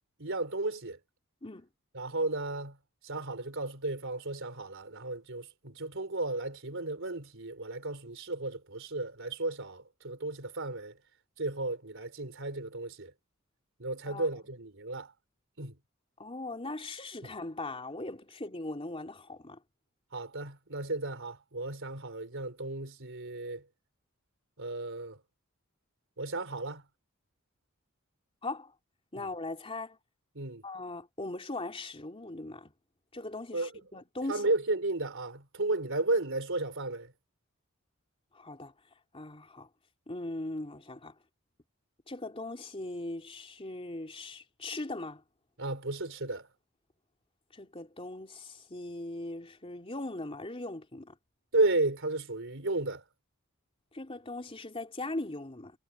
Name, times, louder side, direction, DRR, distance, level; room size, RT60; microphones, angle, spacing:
voice 1, 0.2-1.0 1.9-2.8 3.0-11.0 11.4-13.1 13.8-15.1 15.6-15.7 17.2-17.3 20.1-23.6 24.6-25.2 26.2-26.8 29.2-29.3 30.4-30.6 33.5-33.7 34.3-37.1 45.6-46.5 51.5-53.0, right 2 dB, 65° right, 4.0 m, -33 dB
voice 2, 16.2-19.6 28.4-28.7 29.1-30.0 30.6-32.7 33.1-34.5 38.3-38.7 39.1-39.7 40.1-41.1 42.1-45.2 47.5-51.1 53.9-55.7, left 2 dB, 25° left, 3.2 m, -39 dB
head